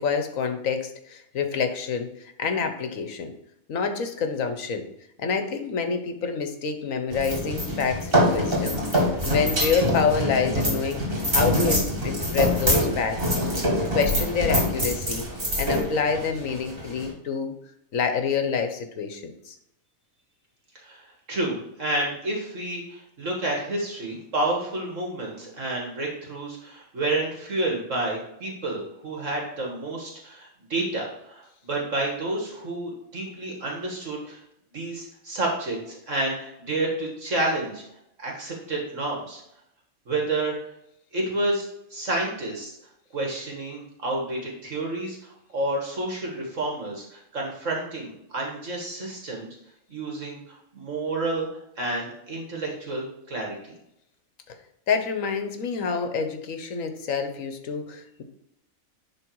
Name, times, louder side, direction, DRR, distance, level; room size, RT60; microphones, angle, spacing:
voice 1, 0.0-3.3 3.7-4.9 5.2-8.8 9.3-11.0 11.3-13.3 13.9-15.3 15.6-17.5 17.9-19.6 54.9-58.2, left 5 dB, 70° left, 7 dB, 1.4 m, -27 dB
sound 1, 7.1-17.1, equal, 40° right, 2.7 m, -25 dB
voice 2, 21.3-34.4 34.7-37.8 38.2-39.4 40.1-40.5 41.1-42.8 43.1-45.2 45.5-49.5 49.9-51.5 51.8-53.7, right 2 dB, 65° right, -1 dB, 2.0 m, -30 dB
11.0 x 3.8 x 4.6 m, 0.79 s
omnidirectional pair, 1.4 m